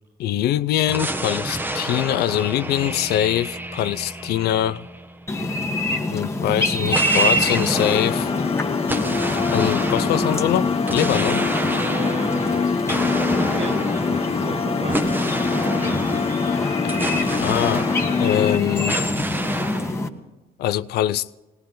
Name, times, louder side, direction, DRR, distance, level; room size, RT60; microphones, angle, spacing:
voice 1, 0.2-4.9 6.1-8.3 9.5-11.5 16.8-16.9 17.4-17.9 18.2-19.0 20.6-21.3, left 12 dB, 70° left, 0.6 m, -23 dB
sound 1, 0.9-5.6 6.9-18.5 18.9-20.0, right 1 dB, 10° right, 1.2 m, -29 dB
sound 2, 5.3-20.1, left 1 dB, 15° left, 1.6 m, -26 dB
sound 3, 7.7-18.6, left 6 dB, 35° left, 1.0 m, -25 dB
voice 2, 11.8-12.7 13.2-16.1, right 3 dB, 35° right, 1.4 m, -35 dB
19.5 x 19.0 x 3.9 m
cardioid pair, 110°, 17 cm